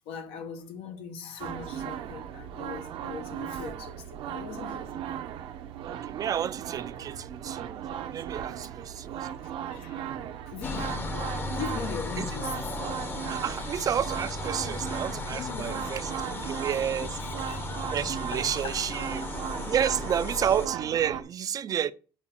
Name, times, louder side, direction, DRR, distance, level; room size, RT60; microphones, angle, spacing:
voice 1, 0.0-5.0 7.0-7.1 8.4-8.5 9.2-11.1 11.6-12.6 13.6-13.7 14.7-14.8 15.3-16.6 17.0-17.9 18.3-19.9, left 6 dB, 85° left, 1.3 m, -41 dB
sound 1, 1.4-21.2, right 9 dB, 70° right, 0.8 m, -37 dB
voice 2, 5.8-9.3 12.2-12.3 13.3-17.1 17.9-19.3 19.7-21.9, right 9 dB, 40° right, 0.4 m, -30 dB
sound 2, 10.6-20.7, left 3 dB, 25° left, 0.8 m, -36 dB
5.8 x 5.0 x 6.1 m
cardioid pair, 125°, 9 cm